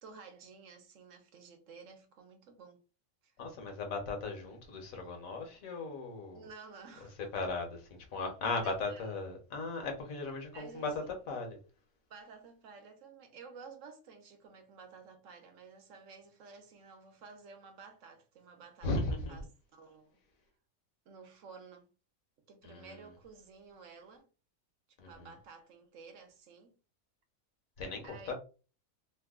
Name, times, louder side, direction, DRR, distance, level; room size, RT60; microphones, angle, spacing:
voice 1, 0.0-2.8 3.2-3.3 6.3-7.2 8.6-9.0 10.5-11.1 12.1-18.9 19.3-19.4 19.7-20.2 21.1-21.9 22.5-24.3 25.1-26.7 28.0-28.3, right 5 dB, 65° right, 1.1 m, -53 dB
voice 2, 3.4-6.5 7.2-11.6 18.8-19.4 22.6-23.1 25.0-25.3 27.8-28.3, left 3 dB, 70° left, 1.3 m, -37 dB
3.1 x 2.2 x 3.5 m
omnidirectional pair, 1.5 m